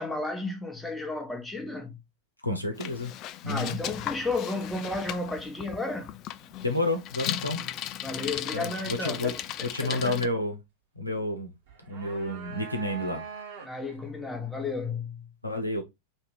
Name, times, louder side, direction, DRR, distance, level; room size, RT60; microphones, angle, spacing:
voice 1, 0.0-2.0 3.5-6.2 8.0-9.4 9.8-10.2 13.6-15.2, left 3 dB, 5° left, 1.0 m, -33 dB
voice 2, 2.4-3.1 3.4-3.8 6.6-7.6 8.5-9.3 9.6-10.6 11.0-11.5 11.9-13.2 15.4-15.8, left 2 dB, 85° left, 0.9 m, -30 dB
Bicycle, 2.7-10.3, left 12 dB, 35° left, 0.3 m, -37 dB
sound 1, 11.7-14.0, right 5 dB, 50° right, 1.5 m, -42 dB
3.1 x 2.9 x 4.6 m
figure-of-eight pair, 90°, 0 cm